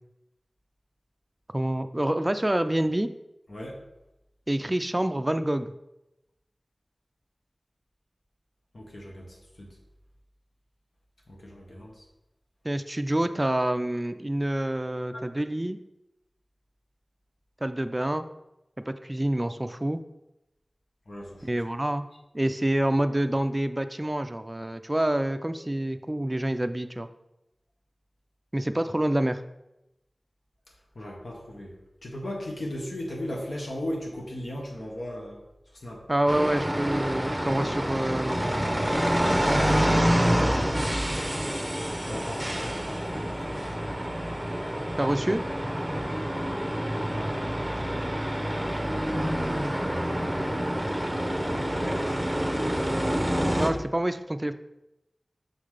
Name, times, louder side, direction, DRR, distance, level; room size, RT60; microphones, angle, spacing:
voice 1, 1.5-3.1 4.5-5.7 12.6-15.8 17.6-18.3 18.9-20.0 21.4-22.1 22.3-27.1 28.5-29.4 36.1-38.5 40.2-40.3 45.0-45.4 53.6-54.5, right 1 dB, 25° right, 10 dB, 0.3 m, -27 dB
voice 2, 3.5-3.8 8.7-9.8 11.3-12.0 15.1-15.2 21.1-21.5 30.9-35.4 35.8-36.1 42.0-43.9 49.0-50.7 51.1-52.6, left 1 dB, 75° left, -1 dB, 1.6 m, -38 dB
sound 1, 36.3-53.7, equal, 5° right, 0.9 m, -27 dB
6.2 x 3.8 x 4.9 m, 0.91 s
wide cardioid pair, 60°, 0 cm